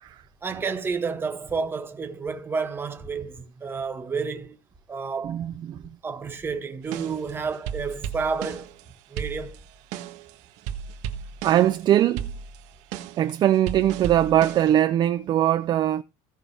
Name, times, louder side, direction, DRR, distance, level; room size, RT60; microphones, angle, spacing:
voice 1, 0.4-4.6 4.9-5.5 6.0-8.7 9.1-9.6, right 5 dB, 15° right, 1.5 m, -30 dB
voice 2, 5.2-5.8 11.4-12.3 13.2-16.0, right 12 dB, 35° right, 0.6 m, -21 dB
sound 1, 6.9-8.8 9.2-10.3 10.6-11.8 12.2-14.7, right 8 dB, 70° right, 1.6 m, -35 dB
16.5 x 5.9 x 3.4 m
cardioid pair, 160°, 12 cm